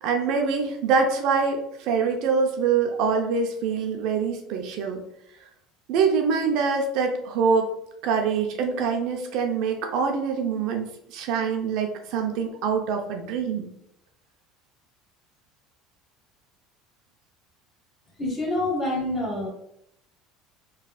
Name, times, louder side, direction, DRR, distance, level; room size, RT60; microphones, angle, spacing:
voice 1, 0.0-5.0 5.9-7.7 8.0-13.7, right 5 dB, 65° right, 3 dB, 0.6 m, -24 dB
voice 2, 18.2-19.5, left 1 dB, 15° left, -1 dB, 1.2 m, -26 dB
4.1 x 3.2 x 2.3 m, 0.76 s
cardioid pair, 145°, 0 cm